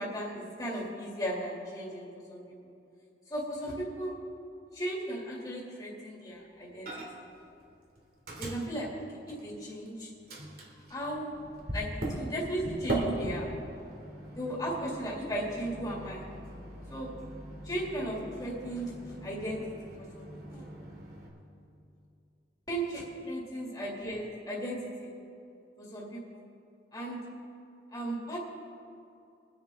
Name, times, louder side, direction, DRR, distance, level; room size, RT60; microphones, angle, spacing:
voice 1, 0.0-2.7 3.3-4.2 4.7-6.9 7.1-7.2 8.4-10.1 10.9-11.4 11.7-13.5 14.4-16.3 16.9-17.1 17.6-19.6 20.0-20.7 22.7-25.1 25.8-26.4 26.9-27.2 27.9-28.4, right 1 dB, 20° left, -5 dB, 2.2 m, -36 dB
Microwave oven, 6.9-7.3 7.6-9.9 10.3-21.3, right 1 dB, 55° right, 2.3 m, -40 dB
22.5 x 8.9 x 3.4 m, 2.6 s
head